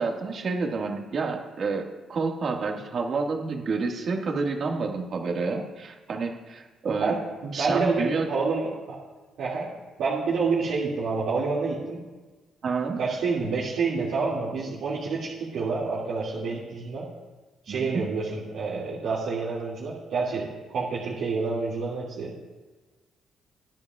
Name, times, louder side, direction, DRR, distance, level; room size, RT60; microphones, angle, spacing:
voice 1, 0.0-7.1 7.5-8.3 12.6-13.0 17.7-18.1, right 4 dB, 55° right, 1 dB, 1.8 m, -29 dB
voice 2, 7.4-8.7 9.4-9.7 10.0-12.0 13.0-17.0 17.6-22.3, right 4 dB, 75° right, -8 dB, 2.3 m, -28 dB
20.5 x 10.5 x 2.4 m, 1.3 s
cardioid pair, 90°, 0 cm